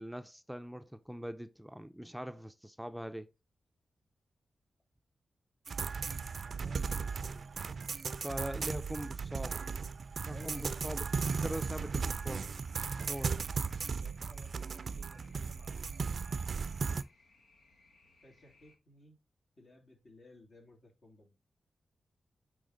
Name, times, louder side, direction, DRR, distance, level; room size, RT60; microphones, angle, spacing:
voice 1, 0.0-3.3 8.2-9.7 10.2-11.0 11.4-12.5 13.1-13.4, equal, 5° right, 0.5 m, -42 dB
sound 1, 5.7-17.0, right 5 dB, 65° right, 0.4 m, -36 dB
voice 2, 6.4-7.6 10.3-12.0 14.0-16.8 18.2-19.2 19.6-21.3, left 1 dB, 60° left, 2.5 m, -58 dB
sound 2, 11.5-18.8, left 3 dB, 85° left, 1.3 m, -66 dB
8.4 x 3.6 x 3.8 m
cardioid pair, 45°, 0 cm